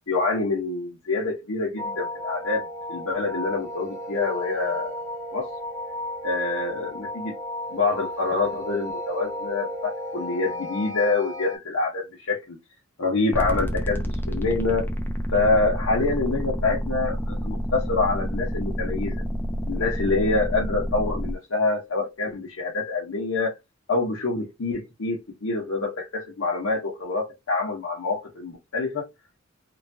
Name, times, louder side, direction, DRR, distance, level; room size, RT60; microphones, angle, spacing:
voice 1, 0.1-5.0 5.3-5.5 6.2-7.3 7.7-12.6 13.0-14.9 15.3-19.1 19.7-23.5 23.9-29.1, left 3 dB, 80° left, 0.8 m, -26 dB
sound 1, 1.8-11.6, left 1 dB, 60° right, 1.2 m, -34 dB
sound 2, 13.3-21.3, equal, 10° left, 0.5 m, -29 dB
3.1 x 2.3 x 2.6 m
head